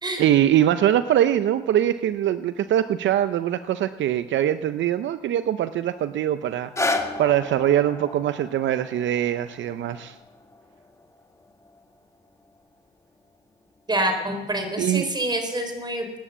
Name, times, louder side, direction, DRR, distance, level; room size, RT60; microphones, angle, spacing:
voice 1, 0.2-10.1 14.8-15.1, right 11 dB, 70° right, 12 dB, 0.6 m, -22 dB
sound 1, 6.5-12.6 13.2-13.3, left 2 dB, 15° left, 1.5 m, -33 dB
voice 2, 13.9-16.2, right 1 dB, 20° right, 6 dB, 3.9 m, -26 dB
18.0 x 10.0 x 7.2 m, 1.1 s
cardioid pair, 90°, 20 cm